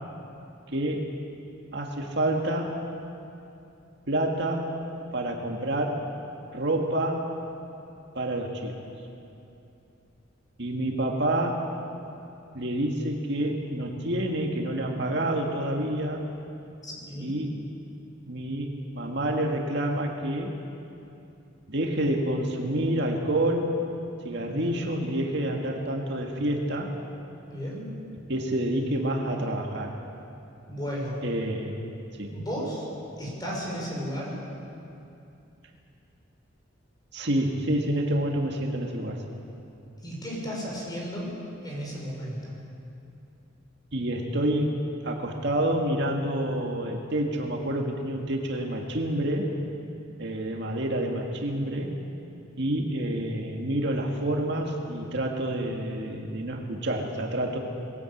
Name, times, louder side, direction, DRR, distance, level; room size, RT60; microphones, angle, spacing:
voice 1, 0.7-1.1 1.7-2.8 4.1-4.7 5.1-6.1 6.5-7.3 8.2-8.7 10.6-11.6 12.5-16.2 17.2-17.6 18.3-20.6 21.7-23.8 24.2-26.9 28.3-30.0 31.2-31.8 32.2-32.3 37.1-39.2 43.9-44.8 45.0-49.5 50.2-51.9 52.6-57.6, right 1 dB, 60° right, 1 dB, 2.0 m, -28 dB
voice 2, 16.8-17.3 24.4-24.8 27.4-27.9 30.7-31.2 32.3-32.8 33.2-34.3 40.0-41.3 41.6-42.5, equal, 20° left, -3 dB, 6.1 m, -34 dB
21.5 x 17.0 x 8.6 m, 2.7 s
head